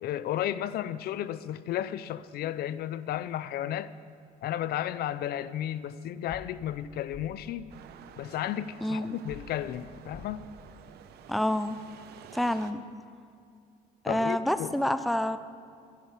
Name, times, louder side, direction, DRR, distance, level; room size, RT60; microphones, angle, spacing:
voice 1, 0.0-3.9 4.4-7.7 8.2-10.5 14.1-14.8, left 11 dB, 65° left, 0.5 m, -33 dB
sound 1, 6.3-6.4 7.1-7.2 9.3-9.4 10.1-10.3, left 4 dB, 40° left, 4.3 m, -45 dB
sound 2, 7.7-12.7, right 9 dB, 70° right, 0.9 m, -50 dB
voice 2, 8.8-9.2 11.3-11.8 12.3-12.8 14.0-15.4, left 1 dB, ahead, 0.5 m, -28 dB
14.0 x 11.0 x 5.8 m
cardioid pair, 110°, 17 cm